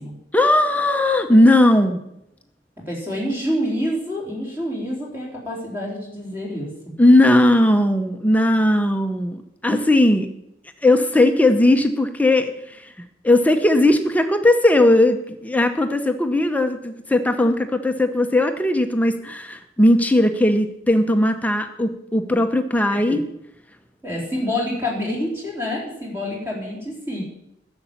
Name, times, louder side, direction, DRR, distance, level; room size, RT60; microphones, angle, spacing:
voice 1, 0.3-2.0 7.0-10.3 10.8-12.8 13.2-23.2, left 1 dB, 10° left, 7 dB, 0.8 m, -18 dB
voice 2, 2.9-6.7 22.9-23.2 24.0-27.2, left 1 dB, 10° right, -3 dB, 4.0 m, -27 dB
11.0 x 7.1 x 8.7 m, 0.80 s
head